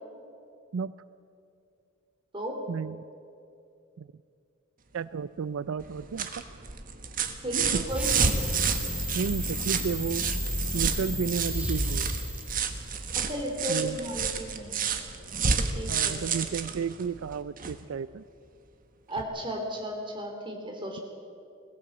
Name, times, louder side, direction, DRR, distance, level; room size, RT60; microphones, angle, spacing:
voice 1, 4.9-6.3 7.7-7.8 9.1-10.3 10.7-12.2 13.7-14.0 15.9-18.2, right 6 dB, 75° right, 16 dB, 0.4 m, -32 dB
sound 1, 5.8-17.8 19.2-19.3, right 6 dB, 45° right, 1.3 m, -30 dB
voice 2, 7.4-8.1 13.1-14.9 15.7-16.3 19.1-21.0, equal, 25° right, 2 dB, 3.0 m, -34 dB
sound 2, 7.9-13.3, equal, 5° right, 1.3 m, -32 dB
20.5 x 16.0 x 7.8 m, 2.5 s
head